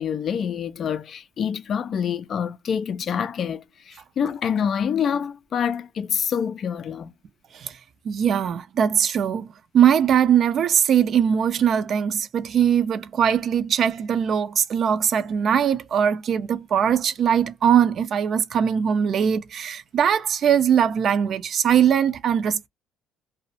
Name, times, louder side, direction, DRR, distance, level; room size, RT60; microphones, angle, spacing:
voice 1, 0.0-7.1, left 7 dB, 50° left, 0.3 m, -26 dB
voice 2, 8.0-22.7, right 8 dB, 55° right, 0.4 m, -21 dB
2.4 x 2.1 x 2.6 m
cardioid pair, 90°, 0 cm